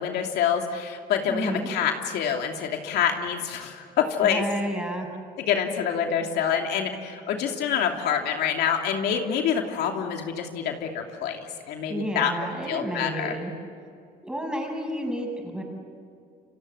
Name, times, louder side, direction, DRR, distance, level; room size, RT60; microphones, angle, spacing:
voice 1, 0.0-4.4 5.5-12.3 12.6-13.4, left 8 dB, 75° left, 3 dB, 2.8 m, -26 dB
voice 2, 1.3-1.7 4.2-5.1 11.9-13.5 14.2-15.6, right 1 dB, 5° right, 1 dB, 7.0 m, -31 dB
29.0 x 25.5 x 8.0 m, 2.3 s
cardioid pair, 110°, 17 cm